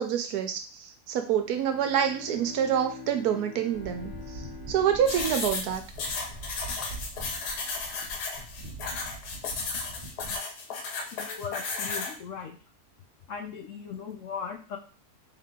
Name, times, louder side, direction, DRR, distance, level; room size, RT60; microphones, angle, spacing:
voice 1, 0.0-5.8, right 9 dB, 80° right, 6 dB, 1.2 m, -27 dB
Bowed string instrument, 1.3-6.9, left 5 dB, 15° left, 1.0 m, -46 dB
sound 1, 3.7-10.4, right 2 dB, 45° right, 0.6 m, -43 dB
sound 2, 5.1-12.1, left 4 dB, 85° left, 1.3 m, -34 dB
voice 2, 11.1-12.6 13.3-14.8, left 6 dB, 65° left, 3 dB, 0.8 m, -38 dB
3.3 x 2.8 x 3.6 m, 0.35 s
omnidirectional pair, 1.7 m